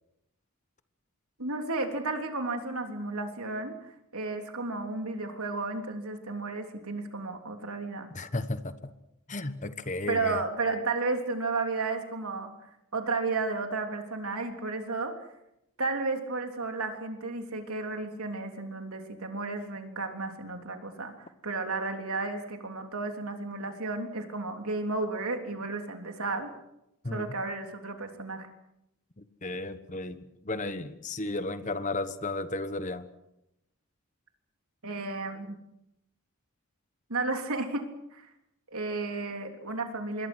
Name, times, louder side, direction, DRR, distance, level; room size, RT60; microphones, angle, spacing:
voice 1, 1.4-8.1 10.1-12.5 12.9-15.1 15.8-26.5 27.1-28.5 34.8-35.6 37.1-37.8 38.1-38.3 38.7-40.3, right 3 dB, 80° right, 4 dB, 3.4 m, -33 dB
voice 2, 8.1-8.9 9.3-10.4 27.0-27.3 29.2-30.2 30.4-33.1, left 2 dB, 35° left, 11 dB, 1.2 m, -34 dB
26.5 x 22.5 x 6.3 m, 0.85 s
head